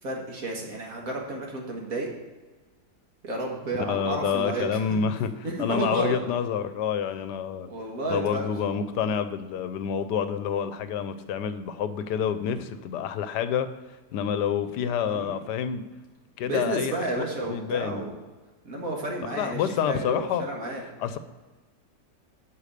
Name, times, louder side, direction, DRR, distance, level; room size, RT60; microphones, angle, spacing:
voice 1, 0.0-2.1 3.2-5.0 5.4-6.2 7.7-8.5 15.0-15.3 16.4-18.1 18.6-20.8, right 2 dB, 55° right, -1 dB, 2.1 m, -31 dB
voice 2, 3.9-5.3 5.6-7.7 8.1-13.7 14.1-15.8 16.4-16.9 17.5-18.1 19.3-20.4 21.0-21.2, left 8 dB, 80° left, 11 dB, 1.2 m, -28 dB
8.3 x 5.3 x 6.5 m, 1.3 s
omnidirectional pair, 1.8 m